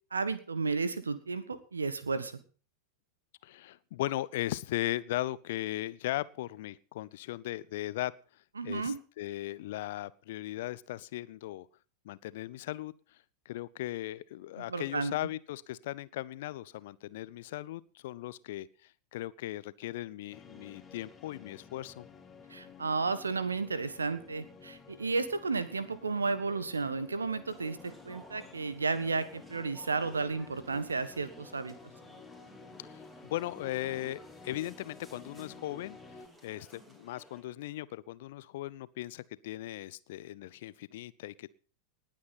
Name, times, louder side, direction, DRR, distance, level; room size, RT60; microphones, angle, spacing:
voice 1, 0.1-2.4 8.6-9.0 14.6-15.1 22.5-31.7, right 4 dB, 75° right, 13 dB, 1.5 m, -33 dB
voice 2, 3.4-8.1 8.6-11.7 12.0-12.9 13.5-22.1 32.8-36.0 36.4-41.5, left 15 dB, 55° left, 19 dB, 0.7 m, -38 dB
sound 1, 20.3-36.3, left 4 dB, 15° left, 2.4 m, -53 dB
sound 2, 27.5-37.4, equal, 10° right, 4.0 m, -56 dB
19.0 x 8.5 x 5.9 m, 0.39 s
figure-of-eight pair, 90°, 0 cm